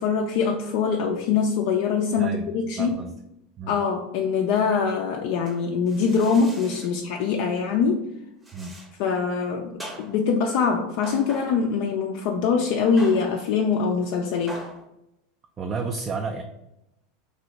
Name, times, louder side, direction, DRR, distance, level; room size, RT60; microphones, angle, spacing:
voice 1, 0.0-3.0 3.7-8.1 9.0-14.6, left 5 dB, 60° left, 1 dB, 0.3 m, -23 dB
voice 2, 2.8-3.1 3.6-3.8 8.5-8.8 15.6-16.4, right 4 dB, 30° right, 4 dB, 0.3 m, -31 dB
sound 1, 5.5-7.0 8.4-9.0 9.8-10.4 11.0-11.8 13.0-13.5 14.5-14.9, right 1 dB, 15° right, 0.7 m, -42 dB
2.8 x 2.6 x 3.1 m, 0.85 s
hypercardioid pair, 85°, 0 cm